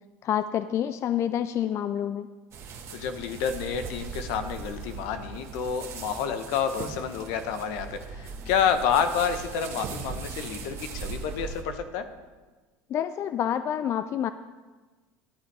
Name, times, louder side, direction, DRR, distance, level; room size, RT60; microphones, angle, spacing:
voice 1, 0.2-2.3 12.9-14.3, left 10 dB, 45° left, 12 dB, 0.4 m, -28 dB
sound 1, 2.5-11.6, right 5 dB, 45° right, 1.7 m, -39 dB
voice 2, 2.9-12.1, left 7 dB, 70° left, 9 dB, 1.0 m, -29 dB
12.0 x 8.6 x 4.8 m, 1.3 s
supercardioid pair, 100°, 7 cm